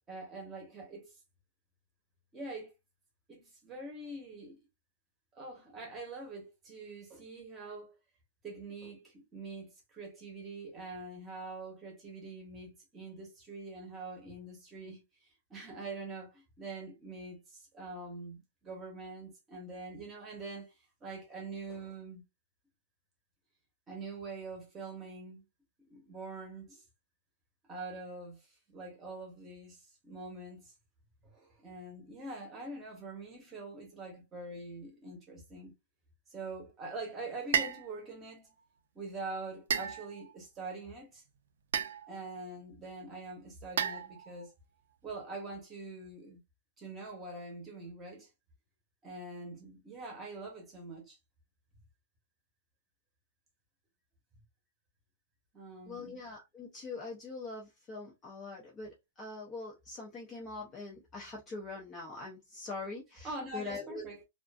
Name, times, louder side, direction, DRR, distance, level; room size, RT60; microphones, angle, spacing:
voice 1, 0.1-1.2 2.3-2.7 3.3-4.6 5.3-8.0 8.4-20.7 21.0-22.2 23.9-25.4 25.8-26.8 27.7-30.7 31.2-35.7 36.3-38.5 38.9-41.2 42.1-44.5 45.0-46.4 46.8-48.3 49.0-51.2 55.5-56.2 63.2-64.2, right 3 dB, 15° right, 0.9 m, -44 dB
sound 1, 37.5-37.9 39.7-40.4 41.7-42.2 43.8-44.4, right 8 dB, 70° right, 0.4 m, -33 dB
voice 2, 55.9-64.1, left 3 dB, 15° left, 0.5 m, -43 dB
2.4 x 2.4 x 2.3 m
hypercardioid pair, 175°, 0 cm